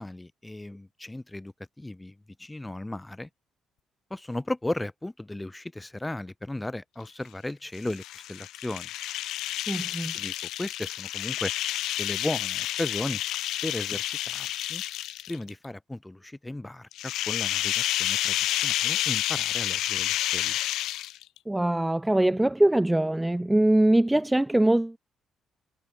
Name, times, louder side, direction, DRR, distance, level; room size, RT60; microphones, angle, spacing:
voice 1, 0.0-3.3 4.1-8.9 10.1-11.5 12.0-13.2 13.6-14.8 15.3-18.4 18.6-20.6, left 1 dB, 10° left, 0.8 m, -35 dB
sound 1, 7.7-15.5 16.9-21.4, left 14 dB, 85° left, 0.4 m, -30 dB
voice 2, 9.7-10.1 21.5-25.0, right 1 dB, 10° right, 0.3 m, -22 dB
cardioid pair, 90°, 0 cm